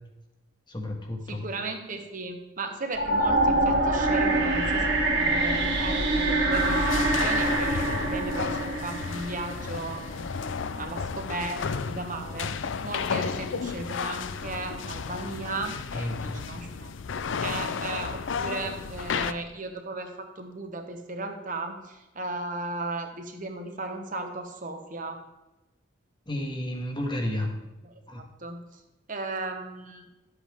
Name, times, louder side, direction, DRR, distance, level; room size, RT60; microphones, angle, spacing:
voice 1, 0.7-1.4 15.9-16.4 26.3-27.5 28.1-28.2, left 1 dB, 25° left, 2 dB, 1.5 m, -31 dB
voice 2, 1.3-12.5 12.8-16.9 17.4-25.2 27.8-28.0 28.4-28.8 29.1-30.1, right 2 dB, 40° right, 5 dB, 1.2 m, -36 dB
sound 1, 2.9-10.0, right 2 dB, 55° right, 2.1 m, -25 dB
sound 2, 6.5-19.3, left 5 dB, 70° left, 0.5 m, -33 dB
12.0 x 8.0 x 3.6 m, 1.0 s
head